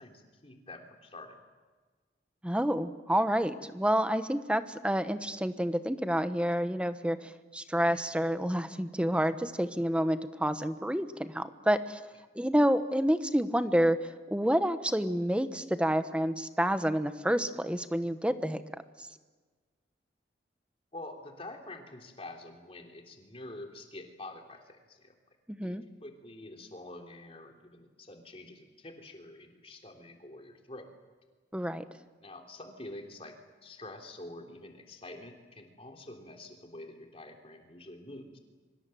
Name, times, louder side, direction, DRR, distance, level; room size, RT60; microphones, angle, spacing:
voice 1, 0.0-1.4 20.9-25.1 25.6-30.9 32.2-33.3 33.6-38.4, left 2 dB, 30° left, 4 dB, 3.3 m, -47 dB
voice 2, 2.4-12.0 12.3-18.6 25.5-25.8 31.5-31.8, equal, 5° right, 10 dB, 1.0 m, -29 dB
25.5 x 24.5 x 7.8 m, 1.4 s
head